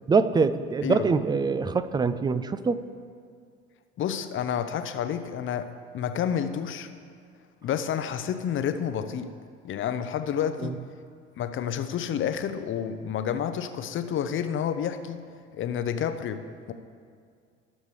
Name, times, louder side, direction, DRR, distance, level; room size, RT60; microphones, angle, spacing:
voice 1, 0.1-2.9 10.6-10.7, right 4 dB, 15° right, 14 dB, 0.4 m, -24 dB
voice 2, 0.8-1.1 4.0-5.7 5.9-6.9 7.6-9.3 9.6-10.8 11.4-15.2 15.5-16.7, left 8 dB, 35° left, 9 dB, 0.7 m, -29 dB
19.0 x 6.4 x 3.3 m, 2.2 s
figure-of-eight pair, 65°, 34 cm